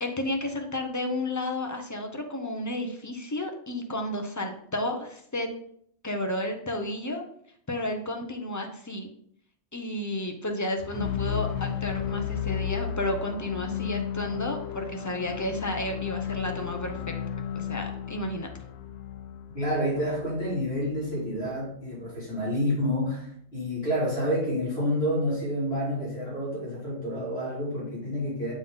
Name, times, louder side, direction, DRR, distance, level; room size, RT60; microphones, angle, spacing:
voice 1, 0.0-5.5 6.0-7.2 7.7-9.1 9.7-17.1 17.5-18.5, left 1 dB, 20° left, 4 dB, 0.7 m, -32 dB
sound 1, 10.8-20.8, left 9 dB, 80° left, 0.9 m, -33 dB
voice 2, 19.5-28.5, equal, 60° left, -8 dB, 3.2 m, -29 dB
7.3 x 3.7 x 3.9 m, 0.65 s
omnidirectional pair, 1.1 m